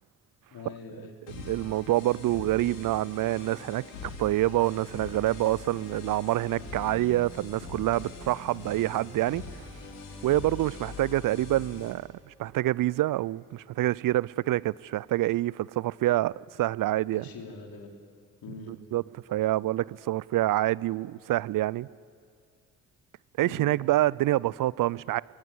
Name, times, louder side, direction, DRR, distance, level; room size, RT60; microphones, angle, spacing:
voice 1, 0.5-1.2 17.1-17.9 18.4-18.8 23.4-23.7, left 4 dB, 55° left, 3.9 m, -43 dB
sound 1, 1.3-11.9, left 4 dB, 80° left, 3.5 m, -43 dB
voice 2, 1.5-9.4 10.2-17.2 18.9-19.0 19.3-21.9 23.4-25.2, right 15 dB, 50° right, 0.5 m, -27 dB
21.5 x 17.5 x 8.4 m
hypercardioid pair, 45°, 41 cm